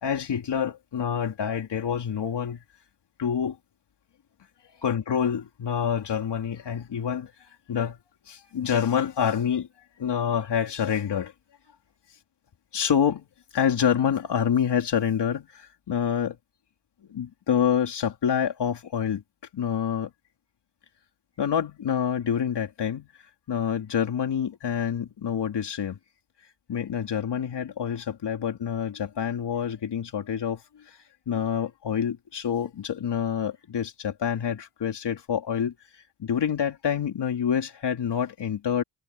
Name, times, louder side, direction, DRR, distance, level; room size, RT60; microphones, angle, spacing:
voice 1, 0.0-2.6 3.2-3.5 4.8-7.3 7.7-8.0 8.3-9.7 10.0-11.3 12.7-13.2 13.5-15.5 15.9-16.3 17.1-19.2 19.5-20.1 21.4-23.1 23.5-26.0 26.7-30.6 31.3-35.7 36.2-38.8, left 8 dB, 60° left, 3.3 m, -27 dB
wide cardioid pair, 125°, 47 cm